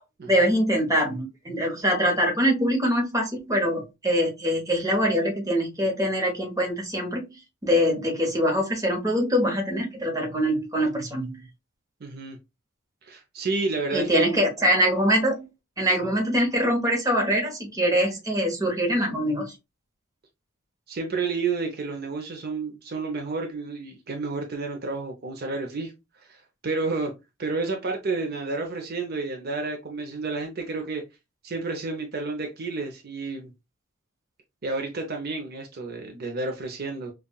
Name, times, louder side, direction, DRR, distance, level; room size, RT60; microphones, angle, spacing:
voice 1, 0.3-7.3 7.6-11.4 13.9-15.5 15.8-19.5, equal, 15° right, 0.9 m, -23 dB
voice 2, 12.0-12.4 13.0-14.3 20.9-25.9 26.3-27.1 27.4-31.0 31.4-33.5 34.6-37.1, right 3 dB, 45° right, 0.7 m, -30 dB
5.4 x 2.4 x 2.3 m
head